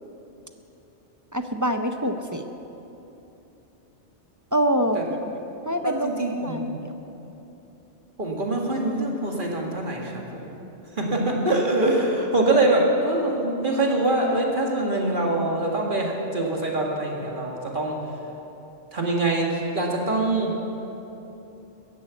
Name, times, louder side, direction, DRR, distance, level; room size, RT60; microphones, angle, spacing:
voice 1, 1.3-2.5 4.5-5.3 5.7-6.1 6.4-6.9, equal, 20° right, 6 dB, 0.5 m, -25 dB
voice 2, 5.8-6.8 8.2-10.5 11.0-18.0 18.9-20.5, right 2 dB, 40° right, -1 dB, 2.2 m, -24 dB
14.0 x 11.0 x 8.3 m, 3.0 s
omnidirectional pair, 1.3 m